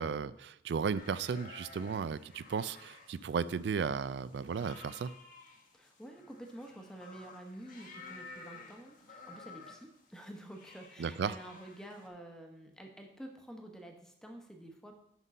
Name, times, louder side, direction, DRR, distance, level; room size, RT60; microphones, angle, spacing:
voice 1, 0.0-5.1 11.0-11.4, right 6 dB, 70° right, 17 dB, 0.3 m, -35 dB
sound 1, 0.9-12.1, left 3 dB, 50° left, 1.1 m, -53 dB
voice 2, 5.7-14.9, right 1 dB, 5° left, 3 dB, 0.9 m, -49 dB
6.1 x 5.4 x 5.3 m, 0.78 s
head